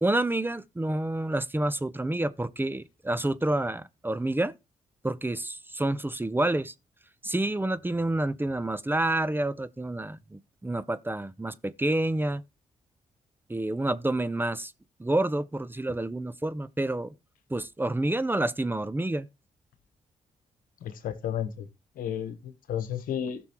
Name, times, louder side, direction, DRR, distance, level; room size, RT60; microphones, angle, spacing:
voice 1, 0.0-4.5 5.0-6.7 7.2-12.4 13.5-14.7 15.0-17.1 17.5-19.3, right 1 dB, 15° right, 0.7 m, -28 dB
voice 2, 20.8-21.7 22.0-23.5, left 9 dB, 80° left, 1.2 m, -32 dB
16.5 x 6.2 x 3.0 m
supercardioid pair, 50°, 14 cm